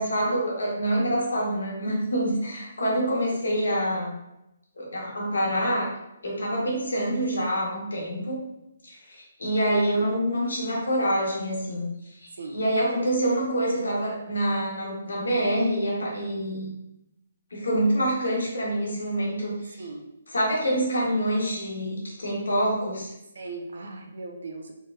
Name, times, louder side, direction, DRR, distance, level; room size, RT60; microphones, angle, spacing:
voice 1, 0.0-4.1 4.8-5.9 6.2-8.4 8.8-11.8 12.2-16.7 17.5-19.8 20.3-23.1, right 1 dB, 80° left, -3 dB, 1.3 m, -26 dB
voice 2, 23.3-24.7, right 3 dB, 70° right, 3 dB, 0.7 m, -38 dB
3.6 x 3.3 x 2.7 m, 0.88 s
hypercardioid pair, 145°, 0 cm